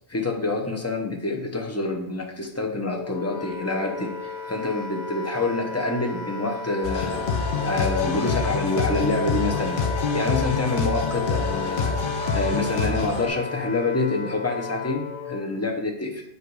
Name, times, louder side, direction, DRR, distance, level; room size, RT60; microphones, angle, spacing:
voice 1, 0.1-7.3 7.6-12.0 12.3-16.2, left 2 dB, 15° left, 2 dB, 0.6 m, -27 dB
Wind instrument woodwind instrument, 2.9-15.5, left 5 dB, 85° left, 1.1 m, -34 dB
sound 1, 6.8-13.3, left 4 dB, 50° left, 0.9 m, -26 dB
7.7 x 3.2 x 4.7 m, 0.76 s
omnidirectional pair, 1.3 m